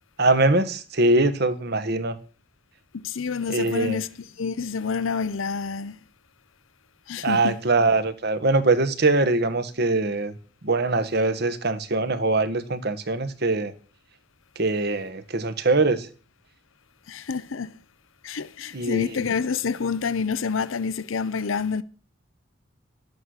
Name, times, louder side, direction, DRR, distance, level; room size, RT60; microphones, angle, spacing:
voice 1, 0.2-2.2 3.5-4.0 7.2-10.3 10.6-13.7 14.6-16.1 18.7-19.2, right 2 dB, 55° right, 1.2 m, -22 dB
voice 2, 2.9-4.1 4.4-6.0 7.1-7.6 17.1-17.7 18.2-21.8, left 5 dB, 85° left, 0.7 m, -28 dB
12.5 x 8.6 x 6.5 m
head